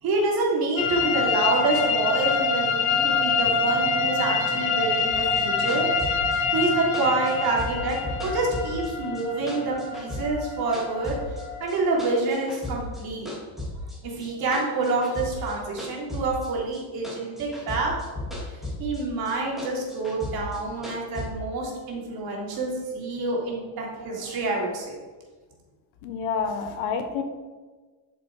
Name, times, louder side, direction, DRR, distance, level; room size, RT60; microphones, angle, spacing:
voice 1, 0.0-5.9 6.5-8.0 8.2-11.2 11.6-13.3 14.0-17.9 18.8-25.0, right 3 dB, 55° right, -2 dB, 3.2 m, -27 dB
sound 1, 0.8-12.3, left 4 dB, 75° left, 2.1 m, -26 dB
sound 2, 5.1-9.2 9.5-11.4 11.7-13.0 13.3-16.8 17.0-19.0 19.3-21.3, left 1 dB, ahead, 2.9 m, -35 dB
voice 2, 26.0-27.2, left 6 dB, 90° left, 6 dB, 1.6 m, -28 dB
11.0 x 6.9 x 4.9 m, 1.3 s
cardioid pair, 160°, 45 cm